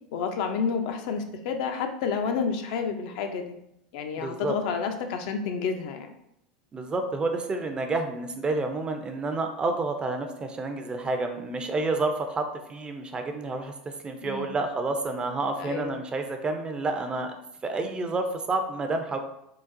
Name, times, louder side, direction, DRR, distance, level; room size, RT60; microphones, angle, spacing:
voice 1, 0.1-3.6 3.9-6.1 14.2-14.6 15.6-16.0 17.8-18.1, left 6 dB, 65° left, 5 dB, 0.4 m, -30 dB
voice 2, 4.2-4.5 6.7-13.7 14.0-17.3 17.6-19.2, right 3 dB, 20° right, 5 dB, 0.4 m, -29 dB
3.8 x 2.0 x 2.5 m, 0.78 s
hypercardioid pair, 95°, 4 cm